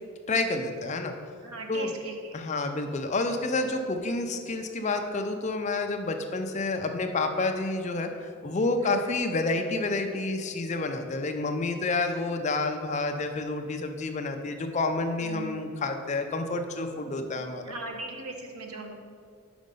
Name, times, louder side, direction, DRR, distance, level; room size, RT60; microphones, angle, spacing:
voice 1, 0.3-1.1 1.7-1.9 2.3-8.1 8.4-17.6, left 3 dB, 30° left, 6 dB, 0.4 m, -29 dB
voice 2, 1.4-2.4 8.8-9.2 15.2-15.7 16.9-17.3 17.6-19.0, right 2 dB, 80° right, 3 dB, 0.9 m, -39 dB
5.4 x 5.1 x 5.2 m, 2.1 s
head